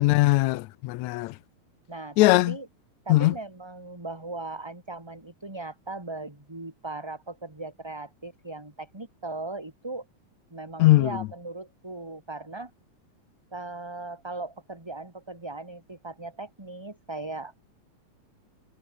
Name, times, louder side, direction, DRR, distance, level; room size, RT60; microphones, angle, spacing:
voice 1, 0.0-1.4 2.2-2.6 3.1-3.3 10.8-11.1, left 19 dB, 80° left, 2.0 m, -20 dB
voice 2, 1.9-2.7 3.0-10.1 10.5-12.7 13.5-17.5, right 2 dB, 10° right, 2.5 m, -38 dB
omnidirectional pair, 3.3 m